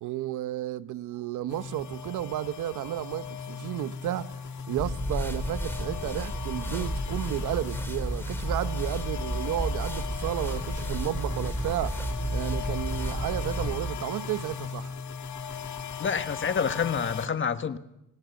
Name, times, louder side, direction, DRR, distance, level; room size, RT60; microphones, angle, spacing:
voice 1, 0.0-11.9 12.3-14.9, right 13 dB, 80° right, 0.8 m, -32 dB
sound 1, 1.5-17.3, left 7 dB, 70° left, 1.8 m, -38 dB
sound 2, 4.8-13.8, equal, 5° left, 3.9 m, -32 dB
voice 2, 16.0-17.8, left 6 dB, 40° left, 1.4 m, -28 dB
25.0 x 17.5 x 7.0 m
cardioid pair, 90°, 30 cm